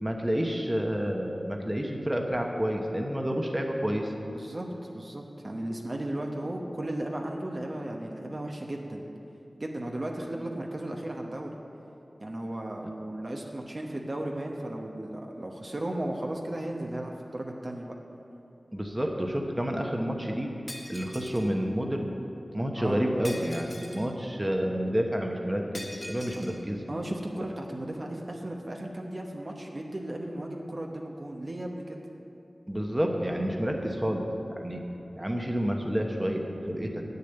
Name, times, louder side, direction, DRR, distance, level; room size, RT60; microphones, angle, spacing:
voice 1, 0.0-4.1 18.7-20.5 20.9-22.1 22.5-26.8 32.7-34.8 35.2-37.0, equal, 20° right, 2 dB, 1.0 m, -29 dB
voice 2, 4.2-9.0 9.6-11.5 12.2-17.9 22.7-23.1 26.9-32.0, right 1 dB, 50° right, 0 dB, 0.9 m, -35 dB
Shatter, 20.7-21.5 23.2-24.1 25.7-26.6, left 1 dB, 40° left, 1.3 m, -42 dB
8.5 x 6.8 x 8.0 m, 2.8 s
wide cardioid pair, 60°, 0 cm